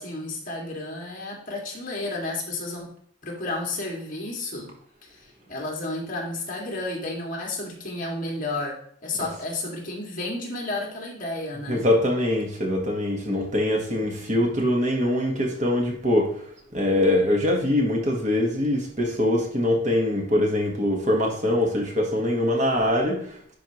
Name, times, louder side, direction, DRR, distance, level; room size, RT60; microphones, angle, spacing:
voice 1, 0.0-2.9 3.2-4.7 5.0-8.7 9.0-11.8, left 2 dB, 45° left, -2 dB, 2.1 m, -32 dB
voice 2, 11.7-16.5 16.7-23.4, left 1 dB, 40° right, 0 dB, 1.4 m, -23 dB
10.5 x 4.6 x 3.0 m, 0.62 s
head